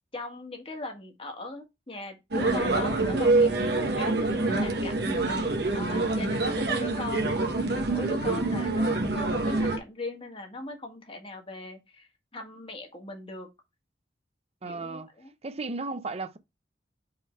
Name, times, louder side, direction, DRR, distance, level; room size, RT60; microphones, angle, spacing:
voice 1, 0.1-7.3 7.7-13.5 14.6-15.3, left 2 dB, 35° left, 1.7 m, -39 dB
sound 1, 2.3-9.8, right 2 dB, 70° right, 1.3 m, -26 dB
voice 2, 8.2-8.6 14.6-15.1 15.4-16.4, right 3 dB, 35° right, 0.7 m, -35 dB
5.4 x 3.9 x 4.4 m
head